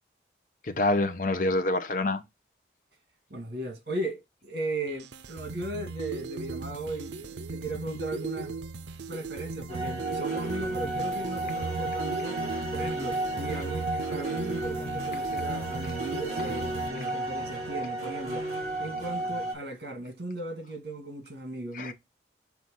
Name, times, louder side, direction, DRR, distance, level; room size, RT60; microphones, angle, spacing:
voice 1, 0.6-2.2 21.7-21.9, left 2 dB, 50° left, 0.8 m, -26 dB
voice 2, 3.3-8.6 9.1-12.4 12.7-21.9, right 2 dB, 65° right, 1.9 m, -37 dB
sound 1, 4.9-16.9, right 4 dB, 85° right, 0.5 m, -37 dB
sound 2, 9.7-19.5, right 2 dB, 40° right, 3.5 m, -33 dB
6.1 x 3.3 x 5.6 m
head